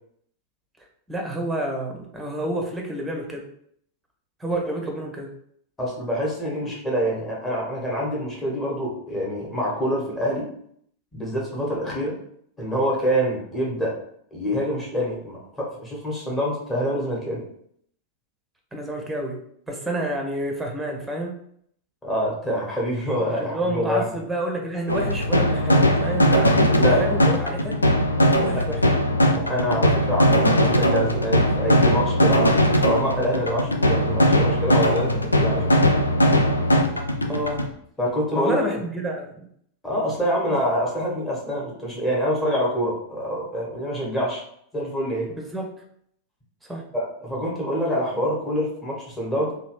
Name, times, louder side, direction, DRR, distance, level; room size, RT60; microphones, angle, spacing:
voice 1, 1.1-3.5 4.4-5.3 6.6-6.7 18.7-21.4 23.2-27.8 28.3-28.9 37.3-37.7 38.3-39.5 45.3-45.8 46.6-46.8, right 1 dB, 5° right, 1 dB, 0.8 m, -29 dB
voice 2, 5.8-10.5 11.1-12.2 12.6-14.0 14.3-17.4 22.0-24.0 26.7-27.1 28.5-28.7 29.3-35.8 38.0-38.7 39.8-44.4 44.7-45.3 46.9-49.5, equal, 15° left, -4 dB, 1.2 m, -26 dB
sound 1, 24.9-37.7, equal, 80° left, 0.3 m, -20 dB
3.0 x 2.4 x 3.2 m, 0.66 s
figure-of-eight pair, 90°, 0 cm